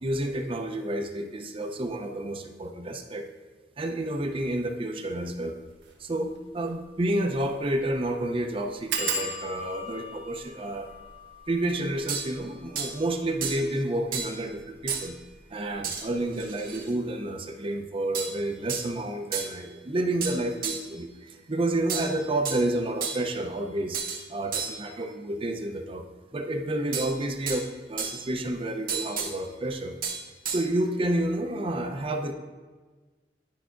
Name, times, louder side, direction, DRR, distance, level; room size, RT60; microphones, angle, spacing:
voice 1, 0.0-3.3 3.8-5.6 6.0-10.9 11.5-15.2 15.5-24.0 24.3-26.0 26.3-29.9 30.5-32.3, right 1 dB, 30° right, 5 dB, 0.5 m, -30 dB
sound 1, 5.7-5.9 6.3-6.4 6.7-6.8 7.3-7.6 7.8-7.9 8.9-14.2 14.9-15.4 15.7-16.0 16.3-16.4, right 2 dB, 80° right, 1.1 m, -37 dB
sound 2, 12.1-12.3 12.7-12.9 13.4-13.7 14.1-14.4 14.9-15.1 15.8-16.0 16.3-16.9 18.1-18.4 18.7-18.9 19.3-19.5 20.2-20.9 21.9-22.7 23.0-23.3 23.9-24.2 24.5-24.9 26.9-27.6 28.0-28.3 28.9-29.3 30.0-30.6, right 6 dB, 50° right, 0.9 m, -32 dB
10.5 x 5.5 x 2.5 m, 1.4 s
head